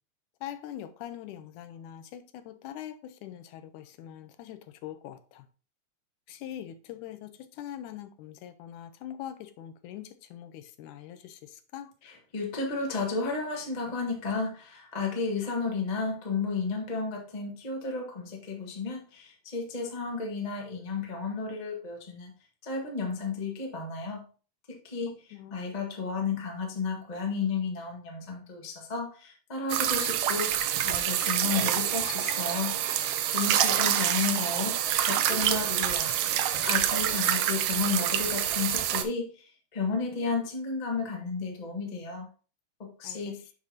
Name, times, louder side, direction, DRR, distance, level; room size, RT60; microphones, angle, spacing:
voice 1, 0.4-5.2 6.3-7.3 7.6-11.4 11.7-11.9 25.3-25.7 43.0-43.2, left 11 dB, 90° left, 2.2 m, -42 dB
voice 2, 12.0-22.3 22.6-24.2 24.7-30.5 30.8-32.8 33.3-36.1 36.6-42.3 42.8-43.4, left 4 dB, 65° left, 0.4 m, -33 dB
sound 1, 29.7-39.0, right 10 dB, 90° right, 1.3 m, -27 dB
7.1 x 6.0 x 2.8 m
omnidirectional pair, 3.4 m